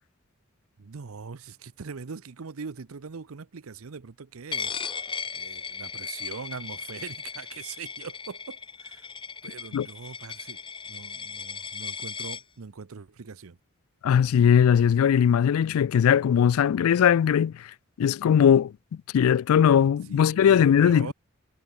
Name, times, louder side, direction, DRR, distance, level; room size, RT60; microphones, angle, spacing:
voice 1, 0.8-4.7 5.3-9.1 9.4-10.6 10.9-13.6 20.1-21.1, right 5 dB, 80° right, 0.7 m, -41 dB
Coin (dropping), 4.5-12.4, left 6 dB, 25° left, 1.4 m, -37 dB
voice 2, 14.0-17.7 18.0-18.7 19.1-21.1, left 8 dB, 80° left, 0.3 m, -20 dB
head